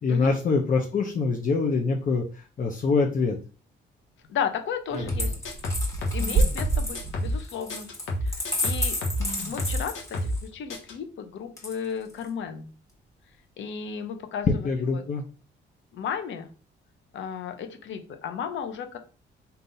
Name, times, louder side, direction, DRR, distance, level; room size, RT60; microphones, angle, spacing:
voice 1, 0.0-2.2 2.6-3.4 14.6-15.2, left 4 dB, 45° left, 1 dB, 0.8 m, -24 dB
voice 2, 4.3-5.3 6.0-7.9 8.2-9.0 9.5-12.7 13.6-14.5 14.9-15.0 15.9-16.5 17.1-19.0, left 7 dB, 70° left, 7 dB, 0.9 m, -34 dB
sound 1, 4.9-7.4 8.6-8.7 8.9-9.0 9.2-9.5 10.0-10.3, right 3 dB, 35° right, 1.1 m, -29 dB
sound 2, 5.1-7.4 7.7-10.4 10.7-10.9, left 1 dB, 85° left, 1.2 m, -29 dB
Coin (dropping), 5.1-10.5 11.6-12.3, left 2 dB, 15° left, 1.7 m, -33 dB
3.9 x 2.7 x 4.0 m, 0.36 s
cardioid pair, 90°, 20 cm